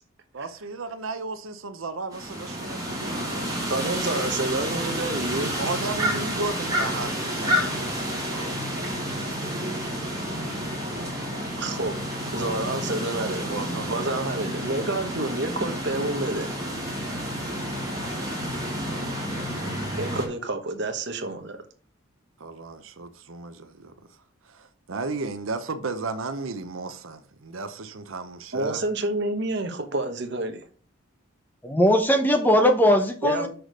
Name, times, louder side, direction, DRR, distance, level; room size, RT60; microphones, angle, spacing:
voice 1, 0.3-3.5 5.6-8.5 13.3-14.1 22.4-23.9 24.4-28.8, right 3 dB, 70° right, 0.8 m, -34 dB
sound 1, 2.1-20.2, equal, 15° right, 2.2 m, -30 dB
voice 2, 3.7-5.5 11.6-11.9 12.3-13.5 13.9-16.5 20.0-21.6 28.5-30.7 33.2-33.5, right 2 dB, 55° right, 1.2 m, -29 dB
voice 3, 31.6-33.5, equal, 10° left, 0.9 m, -19 dB
6.2 x 5.0 x 6.3 m
head